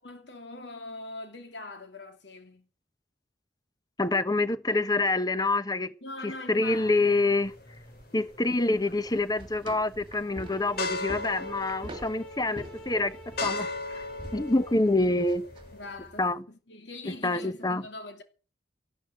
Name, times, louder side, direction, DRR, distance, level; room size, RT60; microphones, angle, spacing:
voice 1, 0.0-2.7 6.0-7.2 15.7-18.2, left 2 dB, 75° left, 2.9 m, -42 dB
voice 2, 4.0-5.9 6.2-7.5 8.1-13.2 13.4-14.0 14.3-15.4 16.2-16.4 17.2-17.8, left 2 dB, 20° left, 1.1 m, -26 dB
sound 1, 6.6-15.9, left 3 dB, 60° left, 2.7 m, -39 dB
sound 2, 7.4-16.3, right 1 dB, 30° right, 2.6 m, -47 dB
sound 3, 10.1-15.1, right 3 dB, 5° left, 2.1 m, -48 dB
14.0 x 12.5 x 7.9 m
head